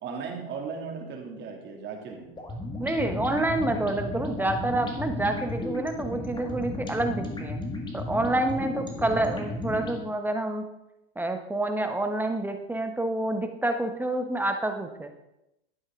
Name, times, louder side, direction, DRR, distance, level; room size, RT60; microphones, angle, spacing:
voice 1, 0.0-2.5, right 5 dB, 35° right, 1 dB, 2.7 m, -37 dB
sound 1, 2.4-10.0, left 2 dB, 15° left, 1.9 m, -34 dB
voice 2, 2.8-7.6 7.9-10.7 11.2-15.1, right 2 dB, 5° right, 6 dB, 1.0 m, -28 dB
12.0 x 9.4 x 3.7 m, 0.88 s
supercardioid pair, 120°, 30 cm